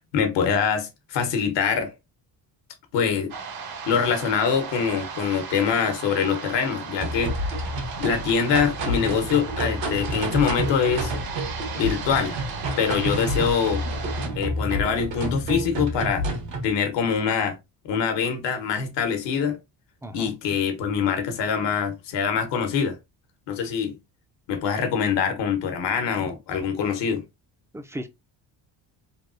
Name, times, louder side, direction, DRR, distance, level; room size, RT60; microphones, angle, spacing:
voice 1, 0.0-1.9 2.9-3.3 3.9-7.5 8.0-11.1 11.8-12.4 12.8-13.8 14.4-16.2 16.6-17.6 17.8-19.6 20.1-23.0 23.5-24.0 24.5-27.2, left 6 dB, 75° left, 1.0 m, -24 dB
sound 1, 3.3-14.3, right 5 dB, 55° right, 0.8 m, -36 dB
sound 2, 7.0-16.7, right 1 dB, 80° right, 1.5 m, -29 dB
voice 2, 20.0-20.3 23.6-23.7 27.7-28.1, equal, 5° right, 0.4 m, -36 dB
3.5 x 2.3 x 2.5 m
cardioid pair, 90°, 43 cm